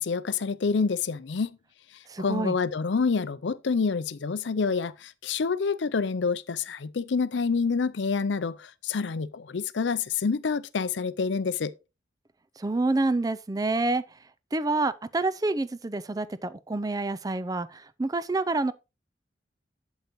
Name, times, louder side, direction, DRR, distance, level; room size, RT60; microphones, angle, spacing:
voice 1, 0.0-1.5 2.2-11.7, left 5 dB, 70° left, 0.5 m, -27 dB
voice 2, 2.1-2.6 12.6-14.0 14.5-18.7, right 2 dB, 20° right, 0.4 m, -28 dB
8.1 x 8.1 x 3.0 m
head